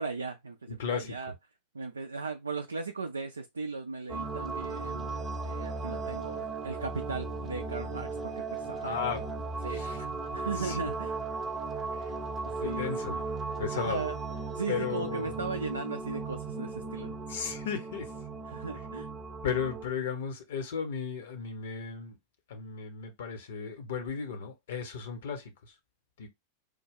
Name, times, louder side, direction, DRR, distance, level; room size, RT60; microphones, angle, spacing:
voice 1, 0.0-1.3 1.7-5.2 5.4-8.9 9.6-9.8 10.3-11.1 12.1-12.2 12.4-13.2 13.7-14.2 14.5-17.2 18.5-19.1, right 4 dB, 75° right, 0.4 m, -37 dB
voice 2, 0.7-1.3 8.8-9.2 9.7-10.1 10.6-10.9 11.9-12.1 12.4-13.2 13.6-14.0 14.7-15.4 17.3-18.1 19.4-22.2 22.5-25.7 26.2-26.3, left 6 dB, 60° left, 0.9 m, -35 dB
sound 1, 4.1-19.9, right 3 dB, 20° right, 0.8 m, -36 dB
3.3 x 2.2 x 3.5 m
figure-of-eight pair, 90°, 0 cm